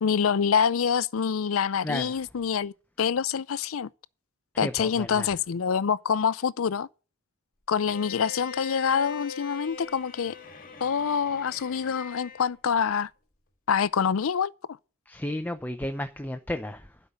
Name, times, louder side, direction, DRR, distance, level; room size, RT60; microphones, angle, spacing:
voice 1, 0.0-3.9 4.6-6.9 7.7-10.3 10.8-13.1 13.7-14.5, left 7 dB, 70° left, 0.5 m, -26 dB
voice 2, 1.8-2.2 4.5-5.3 15.1-17.0, left 1 dB, 10° left, 0.7 m, -33 dB
Bowed string instrument, 7.9-12.5, left 5 dB, 45° left, 1.9 m, -42 dB
12.0 x 5.6 x 8.8 m
head